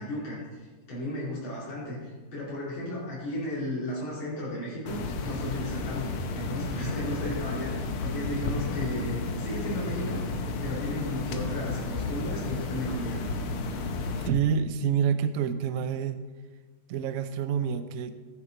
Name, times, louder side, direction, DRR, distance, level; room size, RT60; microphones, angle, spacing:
voice 1, 0.0-5.0 5.2-7.7 8.0-13.2, left 1 dB, 65° left, -8 dB, 3.5 m, -34 dB
sound 1, 4.9-14.3, left 3 dB, 80° left, 1.9 m, -32 dB
voice 2, 14.2-16.2 16.9-18.1, right 7 dB, 90° right, 10 dB, 0.7 m, -27 dB
15.0 x 8.9 x 3.9 m, 1.3 s
omnidirectional pair, 2.4 m